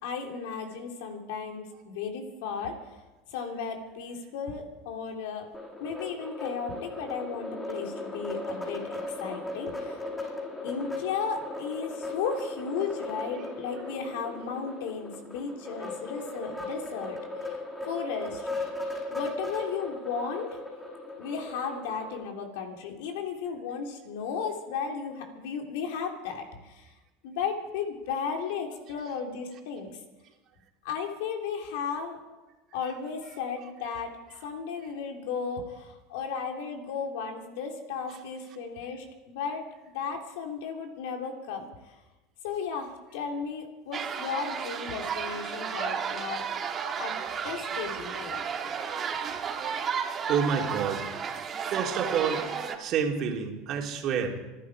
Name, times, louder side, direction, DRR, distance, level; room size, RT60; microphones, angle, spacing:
voice 1, 0.0-2.8 3.3-5.5 5.8-10.0 10.6-17.5 17.8-18.5 19.1-20.6 21.2-26.9 27.2-30.0 30.8-32.2 32.7-39.6 39.9-41.7 42.4-46.4 47.0-47.1 47.4-48.4, left 6 dB, 80° left, 3 dB, 3.2 m, -35 dB
sound 1, 5.5-22.2, left 2 dB, 10° left, 6.8 m, -37 dB
sound 2, 43.9-52.8, right 7 dB, 35° right, 2.1 m, -33 dB
voice 2, 50.3-51.1 51.7-52.4 52.8-54.4, right 7 dB, 50° right, 2 dB, 3.0 m, -28 dB
26.0 x 11.0 x 4.9 m, 1.1 s
supercardioid pair, 105°, 0 cm